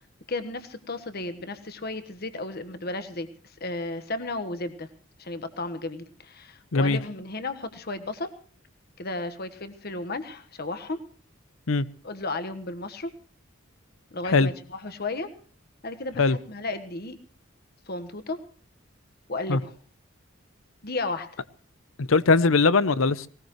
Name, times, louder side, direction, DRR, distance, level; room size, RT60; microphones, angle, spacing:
voice 1, 0.3-4.9 5.2-8.3 9.0-11.0 12.0-13.1 14.1-15.3 15.8-17.2 17.9-18.4 19.3-19.7 20.8-21.4, left 2 dB, 50° left, 1.4 m, -34 dB
voice 2, 22.0-23.3, left 3 dB, 80° left, 0.7 m, -20 dB
19.0 x 19.0 x 3.1 m
head